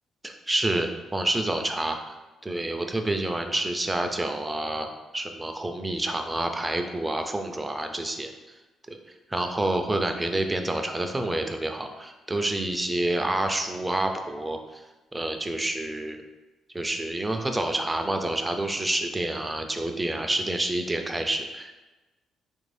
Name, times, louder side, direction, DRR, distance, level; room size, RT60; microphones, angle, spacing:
voice 1, 0.2-2.1 2.4-4.9 5.1-8.3 8.9-9.0 9.3-14.8 15.1-16.2 16.7-21.8, right 1 dB, 15° right, 5 dB, 0.4 m, -28 dB
3.1 x 2.6 x 3.2 m, 1.1 s
cardioid pair, 90°, 0 cm